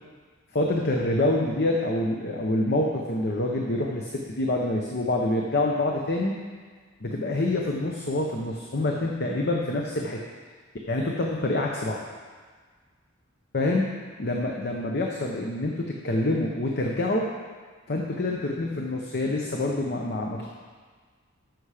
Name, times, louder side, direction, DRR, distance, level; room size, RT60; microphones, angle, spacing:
voice 1, 0.5-6.3 7.0-10.2 10.9-12.0 13.5-13.9 14.2-17.3 17.9-20.5, left 2 dB, 50° left, 0 dB, 0.9 m, -26 dB
14.0 x 6.3 x 5.0 m, 1.5 s
head